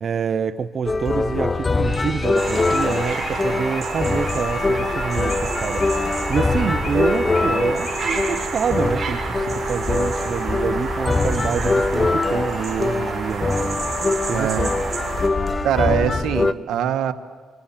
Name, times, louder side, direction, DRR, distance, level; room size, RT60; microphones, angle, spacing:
voice 1, 0.0-5.8 6.3-13.8 14.3-14.7, right 7 dB, 50° right, 10 dB, 0.7 m, -27 dB
sound 1, 0.9-16.5, left 3 dB, 25° left, 0.8 m, -23 dB
sound 2, 1.8-10.9 11.5-13.3 13.7-13.9 14.2-16.2, left 2 dB, 55° left, 4.3 m, -35 dB
sound 3, 2.4-15.3, right 4 dB, 35° right, 7.2 m, -29 dB
voice 2, 14.3-14.7 15.6-17.1, right 10 dB, 80° right, 8 dB, 1.4 m, -22 dB
26.5 x 24.5 x 7.3 m, 1.5 s
cardioid pair, 90°, 0 cm